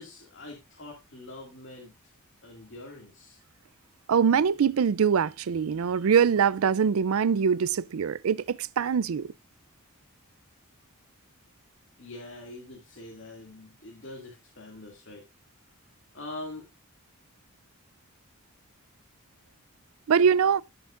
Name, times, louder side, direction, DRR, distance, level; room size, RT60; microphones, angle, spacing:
voice 1, 0.0-2.1 2.4-3.4 12.0-15.2 16.1-16.7, left 2 dB, 55° left, 2.2 m, -44 dB
voice 2, 4.1-9.3 20.1-20.6, right 7 dB, 70° right, 0.4 m, -23 dB
16.5 x 5.8 x 2.5 m
head